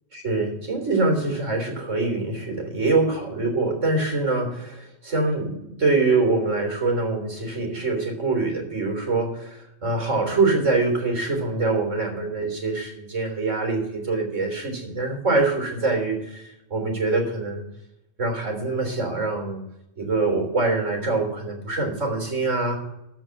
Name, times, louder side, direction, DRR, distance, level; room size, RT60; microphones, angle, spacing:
voice 1, 0.1-17.6 18.2-19.6 20.0-22.8, right 3 dB, 60° right, 2 dB, 3.9 m, -24 dB
14.5 x 5.7 x 7.7 m, 0.85 s
omnidirectional pair, 1.4 m